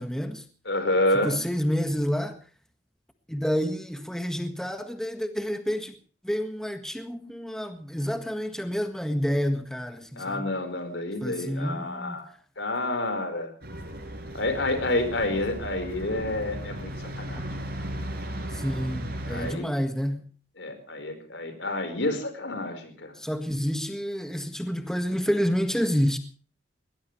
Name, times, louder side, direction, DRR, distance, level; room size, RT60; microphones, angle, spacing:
voice 1, 0.0-0.5 1.1-2.4 3.3-5.9 6.2-10.5 11.2-12.2 18.5-20.3 23.2-26.2, equal, 5° left, 1.7 m, -29 dB
voice 2, 0.6-1.4 10.1-12.3 12.6-13.5 14.3-16.9 17.2-17.4 19.3-19.7 20.6-23.2, left 1 dB, 90° left, 4.8 m, -29 dB
sound 1, 13.6-19.5, right 1 dB, 60° right, 5.5 m, -36 dB
21.5 x 19.5 x 3.3 m
head